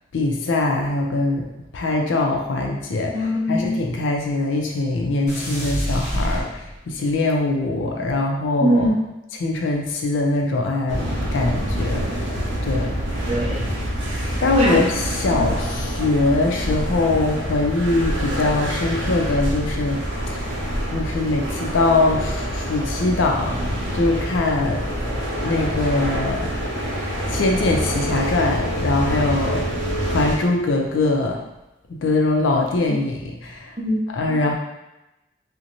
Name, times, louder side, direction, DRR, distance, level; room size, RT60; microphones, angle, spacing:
voice 1, 0.1-1.4 1.7-3.1 3.5-8.9 9.4-11.1 11.3-12.1 12.6-12.9 14.4-20.4 20.9-24.9 25.4-26.5 27.3-29.6 30.1-31.4 32.0-33.2 33.4-33.7 34.1-34.5, left 2 dB, 80° left, 1 dB, 0.4 m, -22 dB
voice 2, 3.1-3.8 8.6-9.1 13.3-13.6 14.5-14.8 15.3-15.4 33.8-34.4, equal, 30° right, -2 dB, 0.4 m, -22 dB
sound 1, 5.3-7.0, equal, 40° left, 0.7 m, -27 dB
sound 2, 10.9-30.4, equal, 80° right, 0.6 m, -26 dB
2.5 x 2.1 x 2.8 m, 0.97 s
head